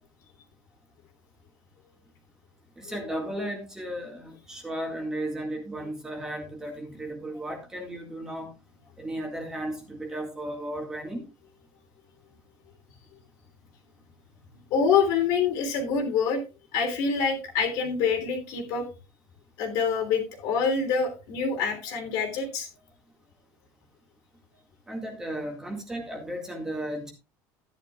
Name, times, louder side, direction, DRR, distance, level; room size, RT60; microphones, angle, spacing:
voice 1, 2.8-8.5 9.0-11.3 24.9-27.1, right 1 dB, 10° right, 1 dB, 2.0 m, -35 dB
voice 2, 14.7-16.4 16.7-18.8 19.6-22.7, left 5 dB, 65° left, 4 dB, 3.3 m, -26 dB
13.5 x 10.5 x 2.4 m, 0.29 s
cardioid pair, 170°, 7 cm